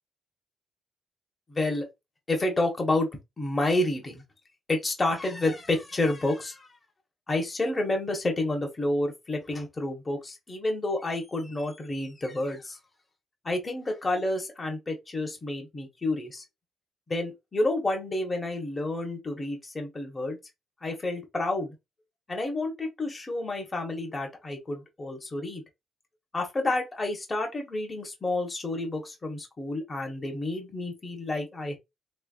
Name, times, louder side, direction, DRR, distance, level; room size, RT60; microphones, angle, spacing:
voice 1, 1.5-1.9 2.3-3.1 3.4-4.2 4.7-6.7 7.3-12.8 13.4-16.4 17.1-20.4 20.8-21.7 22.3-25.6 26.3-31.8, left 2 dB, 25° left, 1.2 m, -29 dB
3.3 x 3.1 x 2.5 m
cardioid pair, 90°, 0 cm